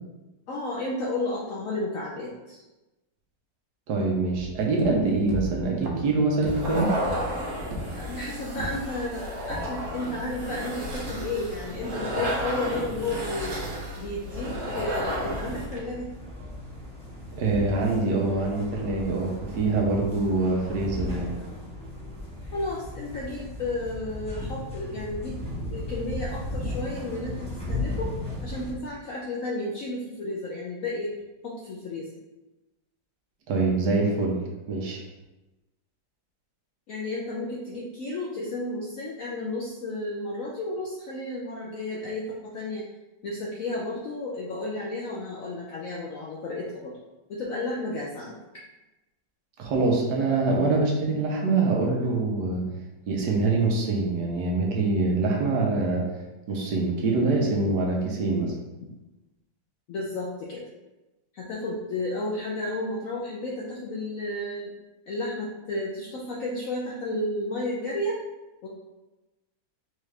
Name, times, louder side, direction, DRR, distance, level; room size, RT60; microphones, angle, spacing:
voice 1, 0.5-2.6 8.0-13.6 14.0-16.1 22.5-28.1 28.4-31.1 31.4-32.1 36.9-42.9 43.2-46.9 47.3-48.4 59.9-60.6 61.3-64.7 65.1-68.2 68.6-68.7, left 2 dB, 75° left, -4 dB, 0.7 m, -32 dB
voice 2, 3.9-6.9 17.3-21.3 33.5-34.4 34.7-35.0 49.6-52.6 53.1-56.0 56.5-58.5, right 3 dB, 70° right, -1 dB, 1.2 m, -24 dB
sound 1, 4.3-9.1 9.5-10.1, left 1 dB, 85° right, 1.4 m, -37 dB
sound 2, 6.5-15.8, equal, 55° right, 1.0 m, -32 dB
sound 3, 14.2-28.7, left 1 dB, 5° left, 0.6 m, -36 dB
4.3 x 2.4 x 3.2 m, 1.1 s
omnidirectional pair, 2.0 m